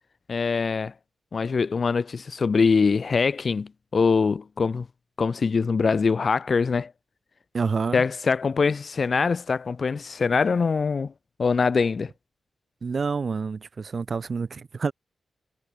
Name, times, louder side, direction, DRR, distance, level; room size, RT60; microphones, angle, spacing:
voice 1, 0.3-0.9 1.3-4.9 5.2-6.9 7.9-11.1 11.4-12.1, left 5 dB, 40° left, 0.6 m, -23 dB
voice 2, 7.5-8.0 12.8-14.9, right 5 dB, 40° right, 2.3 m, -28 dB
wide cardioid pair, 160°, 0 cm